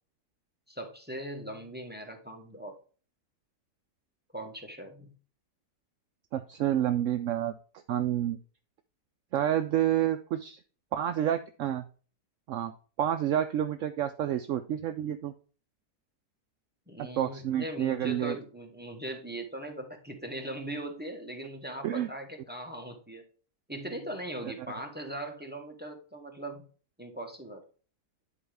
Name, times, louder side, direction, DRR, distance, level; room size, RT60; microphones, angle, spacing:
voice 1, 0.7-2.8 4.3-5.1 16.9-23.2 23.7-26.6 27.0-27.6, right 1 dB, 5° right, 3 dB, 1.1 m, -40 dB
voice 2, 6.3-7.5 7.9-8.4 9.3-10.6 10.9-11.9 12.5-12.7 13.0-15.3 17.0-18.3 21.8-22.1 24.4-24.5, right 11 dB, 70° right, 8 dB, 0.8 m, -29 dB
10.0 x 4.5 x 3.4 m, 0.38 s
omnidirectional pair, 1.6 m